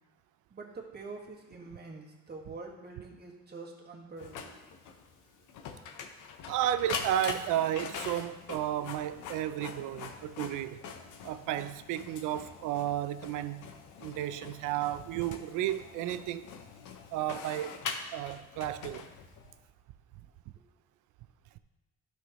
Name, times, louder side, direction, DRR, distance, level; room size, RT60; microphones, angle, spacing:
voice 1, 0.5-4.6 6.3-6.4 9.6-10.3, right 3 dB, 35° right, 1.7 m, -46 dB
Printer, 4.2-19.5, left 6 dB, 85° left, 0.8 m, -43 dB
voice 2, 6.5-10.9 11.2-13.6 14.0-16.5 17.1-17.8 18.1-19.1, right 12 dB, 90° right, 0.5 m, -33 dB
11.5 x 5.8 x 3.0 m
cardioid pair, 90°, 30 cm